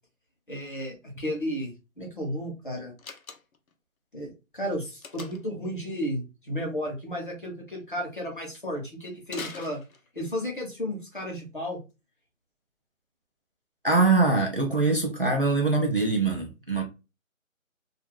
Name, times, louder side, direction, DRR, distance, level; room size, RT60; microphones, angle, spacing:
voice 1, 0.5-2.9 4.1-9.8 10.1-11.8, equal, 35° left, 0.8 m, -33 dB
Slam, 3.0-3.7 5.0-5.6 9.3-10.4, left 5 dB, 75° left, 0.7 m, -42 dB
voice 2, 13.8-16.8, right 3 dB, 40° right, 0.5 m, -23 dB
2.6 x 2.4 x 2.8 m
figure-of-eight pair, 175°, 42 cm